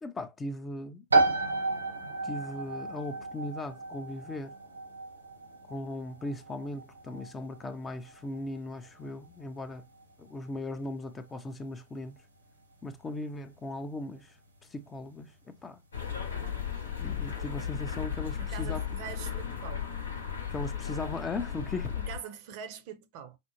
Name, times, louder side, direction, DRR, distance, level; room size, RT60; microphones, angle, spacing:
voice 1, 0.0-1.0 2.2-4.6 5.7-9.9 10.2-12.2 12.8-14.3 14.7-15.8 17.0-18.8 20.5-22.0, left 2 dB, 15° left, 0.5 m, -38 dB
sound 1, 1.1-15.6, right 3 dB, 80° right, 1.0 m, -34 dB
sound 2, 15.9-22.2, left 8 dB, 70° left, 0.9 m, -35 dB
voice 2, 18.4-19.9 22.0-23.4, right 8 dB, 45° right, 0.6 m, -43 dB
4.9 x 2.0 x 3.0 m
figure-of-eight pair, 90°, 0 cm